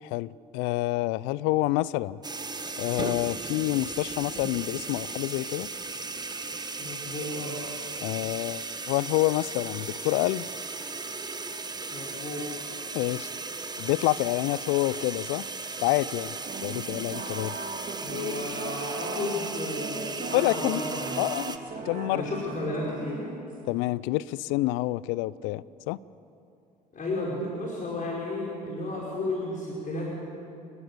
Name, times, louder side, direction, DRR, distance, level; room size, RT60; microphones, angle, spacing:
voice 1, 0.0-2.2 2.8-5.7 8.0-10.5 12.9-13.3 13.8-15.4 15.8-16.4 16.6-17.5 20.3-20.8 21.2-21.6 21.9-22.2 23.7-26.0, left 18 dB, 65° left, 21 dB, 0.5 m, -28 dB
sound 1, 2.2-21.6, right 3 dB, 20° right, 1.6 m, -36 dB
voice 2, 6.8-7.6 11.9-12.5 18.0-21.2 21.7-23.2 26.9-30.1, left 2 dB, 40° left, -4 dB, 4.9 m, -33 dB
sound 2, 16.4-23.8, right 4 dB, 40° right, 2.6 m, -38 dB
29.5 x 12.5 x 7.0 m, 2.6 s
hypercardioid pair, 55°, 21 cm